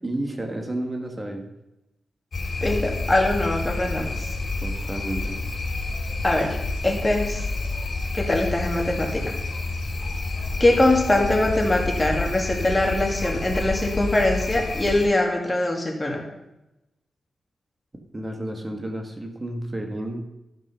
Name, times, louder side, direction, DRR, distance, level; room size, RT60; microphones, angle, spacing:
voice 1, 0.0-1.5 4.6-5.4 18.1-20.2, right 1 dB, 25° right, 3 dB, 1.7 m, -31 dB
sound 1, 2.3-15.1, left 3 dB, 60° left, 2.8 m, -29 dB
voice 2, 2.6-4.3 6.2-6.6 6.8-7.4 8.1-9.3 10.6-16.2, left 1 dB, 20° left, 0 dB, 2.4 m, -22 dB
12.5 x 5.4 x 5.7 m, 0.93 s
cardioid pair, 80°, 0 cm